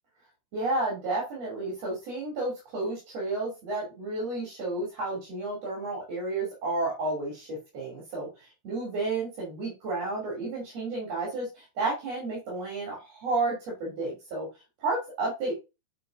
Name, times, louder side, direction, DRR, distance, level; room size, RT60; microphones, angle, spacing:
voice 1, 0.5-14.5 14.8-15.5, right 2 dB, 60° right, -4 dB, 3.7 m, -31 dB
9.2 x 4.7 x 2.5 m, 0.27 s
omnidirectional pair, 3.3 m